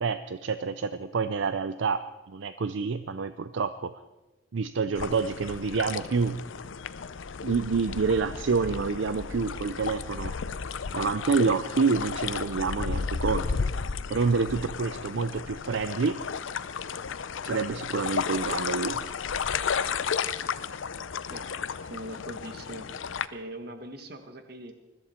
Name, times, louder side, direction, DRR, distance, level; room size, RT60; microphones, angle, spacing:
voice 1, 0.0-3.9 4.5-6.4 7.4-10.4 10.9-13.6 14.1-16.2 17.4-19.1, right 4 dB, 70° right, 11 dB, 0.5 m, -28 dB
sound 1, 4.9-23.3, left 6 dB, 75° left, 0.6 m, -33 dB
voice 2, 21.9-23.0 23.3-24.7, right 1 dB, 50° right, 7 dB, 1.4 m, -41 dB
21.0 x 14.0 x 4.4 m, 1.1 s
head